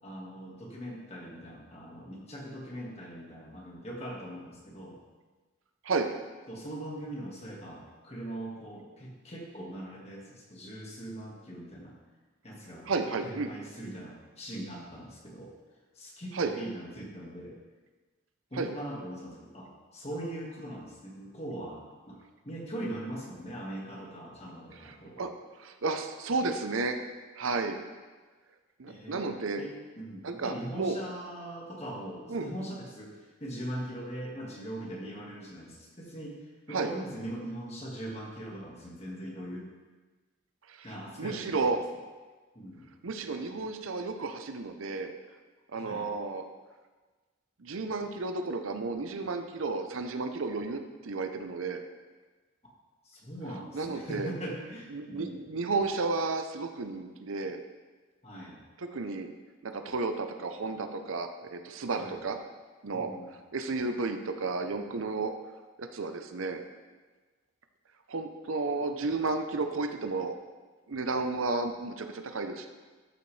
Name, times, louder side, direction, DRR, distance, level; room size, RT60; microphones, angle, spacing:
voice 1, 0.0-5.0 6.5-12.0 12.4-15.5 15.9-17.6 18.5-22.2 22.4-25.2 28.9-36.4 36.7-39.7 40.8-41.6 42.5-42.9 45.7-46.1 53.0-55.4 58.2-58.6 62.0-62.2 62.9-63.3, right 1 dB, 30° left, -3 dB, 1.7 m, -41 dB
voice 2, 12.8-13.5 16.3-16.5 18.5-18.7 24.7-25.3 25.6-27.0 27.4-27.8 28.8-29.6 30.2-31.0 32.3-32.5 36.7-36.9 40.7-41.8 43.0-45.1 45.7-46.4 47.6-51.8 53.7-54.3 54.9-57.6 58.8-59.3 59.6-62.4 62.8-63.1 63.5-65.3 65.8-66.6 68.1-70.4 70.9-72.7, right 3 dB, 75° right, 7 dB, 0.7 m, -32 dB
13.0 x 6.9 x 3.3 m, 1.3 s
head